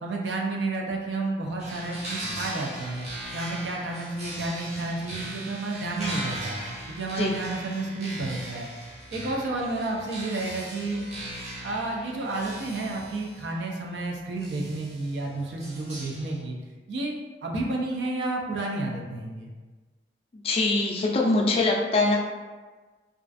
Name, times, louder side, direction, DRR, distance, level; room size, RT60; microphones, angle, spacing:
voice 1, 0.0-3.1 3.3-6.6 6.9-8.7 9.1-11.0 11.6-16.6 16.9-17.1 17.4-19.5, right 2 dB, 85° right, 0 dB, 0.4 m, -31 dB
sound 1, 1.6-16.4, right 1 dB, 40° right, 0.6 m, -39 dB
voice 2, 20.4-22.2, left 2 dB, 35° left, -1 dB, 0.3 m, -23 dB
2.4 x 2.3 x 2.4 m, 1.3 s
head